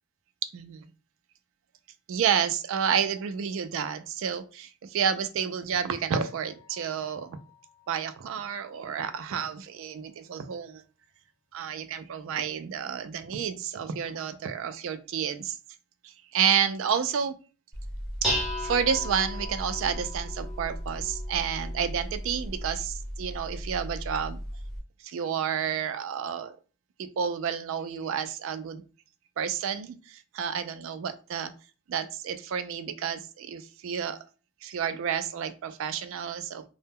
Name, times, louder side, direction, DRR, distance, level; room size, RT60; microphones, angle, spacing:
voice 1, 0.5-0.9 2.1-7.4 7.9-10.8 11.5-15.6 16.0-17.3 18.6-24.4 25.0-26.5 27.0-28.8 29.4-31.5 31.9-34.2 34.6-36.6, right 7 dB, 60° right, 11 dB, 0.3 m, -30 dB
sound 1, 6.2-9.8 10.4-10.5 10.7-10.8, left 2 dB, 50° left, 0.5 m, -46 dB
Dishes pots and pans, 17.7-24.8, equal, ahead, 0.6 m, -34 dB
2.0 x 2.0 x 3.5 m, 0.36 s
head